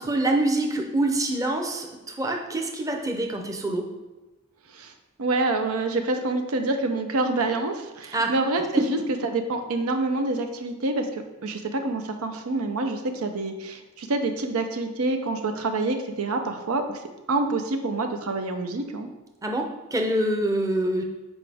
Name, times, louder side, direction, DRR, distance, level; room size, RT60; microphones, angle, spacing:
voice 1, 0.0-3.8 8.1-8.3 8.8-8.9 19.4-21.0, right 1 dB, 15° right, 2 dB, 0.6 m, -25 dB
voice 2, 5.2-17.0 17.3-19.1, right 2 dB, 85° right, 6 dB, 0.7 m, -27 dB
7.2 x 4.8 x 3.5 m, 1.1 s
head